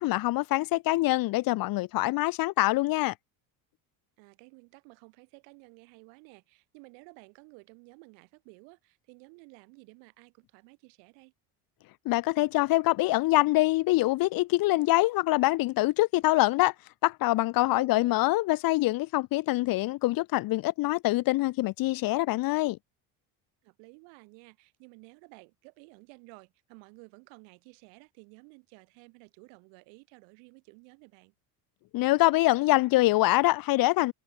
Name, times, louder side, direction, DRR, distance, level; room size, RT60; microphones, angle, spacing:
voice 1, 0.0-3.1 12.1-16.7 17.0-22.8 31.9-34.1, left 19 dB, 50° left, 0.6 m, -25 dB
voice 2, 4.2-11.3 17.7-18.2 23.6-31.3, right 40 dB or more, 80° right, 4.7 m, -54 dB
supercardioid pair, 110°, 44 cm